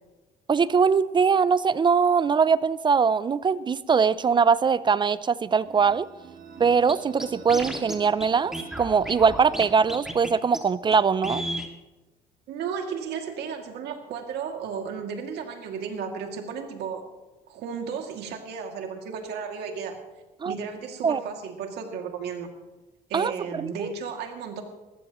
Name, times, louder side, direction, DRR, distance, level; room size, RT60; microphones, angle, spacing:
voice 1, 0.5-6.1 6.6-11.4 20.4-20.5 21.0-21.2 23.1-23.9, right 6 dB, 30° right, 18 dB, 0.4 m, -22 dB
sound 1, 5.7-10.4, right 5 dB, 55° right, 1.9 m, -47 dB
Scratching (performance technique), 6.9-7.0 7.2-8.0 8.2-8.3 8.5-9.6 9.9-10.3 10.5-10.6 10.9-11.0 11.2-11.7, equal, 5° right, 2.1 m, -32 dB
voice 2, 12.5-17.0 17.5-20.0 20.4-22.5 23.1-24.6, right 6 dB, 75° right, 3 dB, 2.4 m, -34 dB
21.0 x 15.5 x 3.0 m, 1.1 s
cardioid pair, 110°, 17 cm